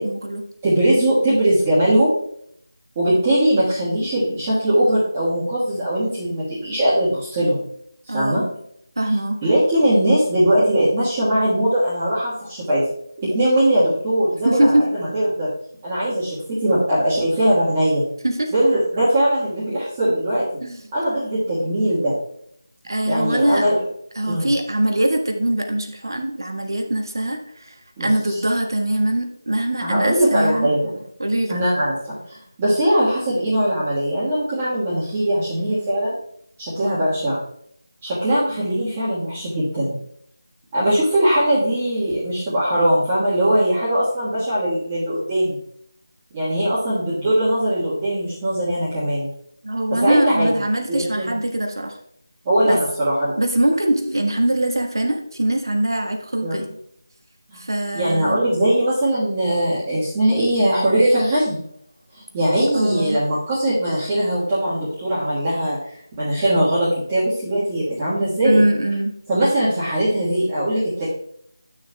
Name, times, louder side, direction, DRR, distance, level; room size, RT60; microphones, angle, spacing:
voice 1, 0.0-0.4 8.1-8.4 9.0-9.4 14.4-14.9 18.2-18.5 20.6-20.8 22.8-23.7 24.1-30.7 31.2-31.6 49.6-52.0 52.6-52.8 53.4-56.7 57.5-58.4 62.7-63.2 68.4-69.1, right 1 dB, 85° right, 3 dB, 1.3 m, -22 dB
voice 2, 0.6-2.1 2.9-7.6 8.1-8.4 9.4-12.8 13.2-15.5 15.8-18.0 18.5-20.5 20.9-22.1 23.0-23.8 24.3-24.5 28.0-28.4 29.8-30.9 31.5-36.1 36.6-37.4 38.0-39.9 40.7-45.6 46.3-49.3 50.0-50.5 50.9-51.4 52.4-53.3 56.4-56.5 57.5-57.6 57.9-61.6 62.1-65.8 66.2-68.6 69.3-71.0, right 1 dB, 15° right, -11 dB, 1.5 m, -20 dB
10.0 x 6.3 x 2.3 m, 0.68 s
figure-of-eight pair, 170°, 2 cm